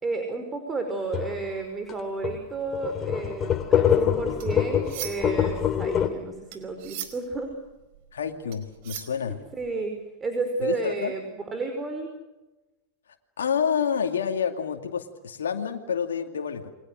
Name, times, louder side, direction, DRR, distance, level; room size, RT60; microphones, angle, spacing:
voice 1, 0.0-7.5 9.3-9.9 10.2-11.2 11.5-12.1, right 3 dB, 20° right, 5 dB, 5.2 m, -31 dB
sound 1, 1.1-1.4 1.9-2.0 2.2-2.4 2.7-6.1, left 9 dB, 30° left, 3.6 m, -24 dB
sound 2, 4.2-5.4 5.8-9.7, right 12 dB, 60° right, 4.6 m, -40 dB
voice 2, 8.1-9.4 10.6-11.1 13.4-16.7, left 7 dB, 80° left, 4 dB, 2.5 m, -28 dB
29.5 x 24.5 x 6.5 m, 1.0 s
hypercardioid pair, 95°, 0 cm